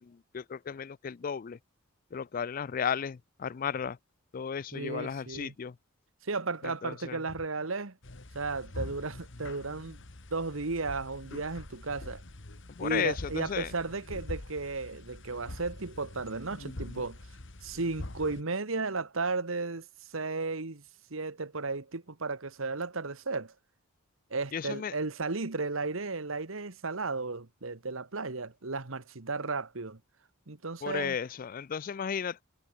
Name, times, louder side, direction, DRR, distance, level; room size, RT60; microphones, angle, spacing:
voice 1, 0.0-1.6 2.1-4.0 4.3-5.7 6.6-7.2 12.8-13.7 24.5-24.9 30.8-32.4, left 7 dB, 40° left, 0.4 m, -34 dB
voice 2, 4.7-5.5 6.2-8.0 8.3-10.0 10.3-12.2 12.8-17.2 17.6-19.9 20.1-20.8 21.1-23.5 24.3-30.0 30.5-31.2, right 3 dB, 70° right, 1.5 m, -34 dB
sound 1, 8.0-18.4, left 1 dB, 60° left, 1.8 m, -44 dB
head